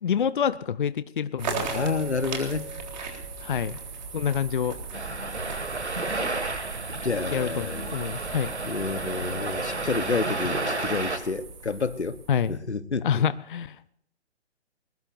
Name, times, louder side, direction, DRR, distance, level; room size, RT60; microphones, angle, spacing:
voice 1, 0.0-1.8 3.4-3.8 4.1-4.8 7.3-8.5 12.3-12.5 13.0-13.8, left 8 dB, 50° left, 0.6 m, -27 dB
sound 1, 1.4-12.6, right 5 dB, 40° right, 3.7 m, -38 dB
Keyboard (musical), 1.5-4.0, right 3 dB, 20° right, 1.9 m, -40 dB
voice 2, 1.7-2.7 6.9-7.9 8.6-12.2 12.5-13.2, left 4 dB, 80° left, 1.1 m, -29 dB
sound 2, 4.9-11.2, right 2 dB, 80° right, 2.1 m, -32 dB
21.0 x 20.5 x 2.6 m
figure-of-eight pair, 135°, 33 cm